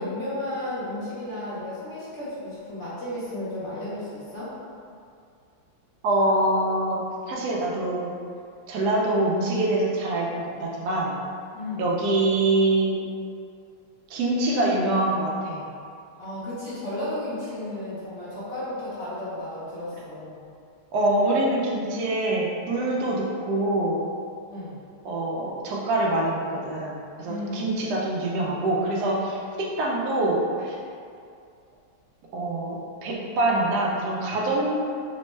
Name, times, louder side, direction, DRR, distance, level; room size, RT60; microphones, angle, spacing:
voice 1, 0.0-4.6 11.5-11.9 16.2-20.4 24.5-24.8 27.2-27.8, left 1 dB, 50° left, -11 dB, 0.9 m, -33 dB
voice 2, 6.0-8.1 8.7-11.1 11.8-13.0 14.1-15.6 20.9-24.0 25.0-30.7 32.3-34.7, right 2 dB, 75° right, -3 dB, 0.9 m, -25 dB
3.4 x 2.1 x 3.0 m, 2.4 s
omnidirectional pair, 2.3 m